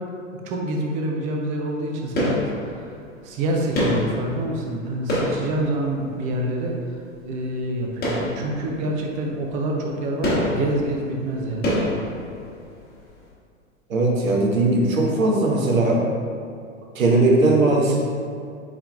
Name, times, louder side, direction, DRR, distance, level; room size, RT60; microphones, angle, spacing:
voice 1, 0.4-2.4 2.7-3.0 3.2-11.8, right 1 dB, 20° right, 0 dB, 0.3 m, -27 dB
sound 1, 2.2-3.1 3.7-6.3 8.0-9.0 9.3-9.4 10.2-12.8 13.1-13.2, left 1 dB, 25° left, 1.2 m, -26 dB
voice 2, 13.9-16.0 16.9-18.0, right 2 dB, 80° right, -1 dB, 0.9 m, -19 dB
4.2 x 3.9 x 2.3 m, 2.3 s
hypercardioid pair, 105°, 40 cm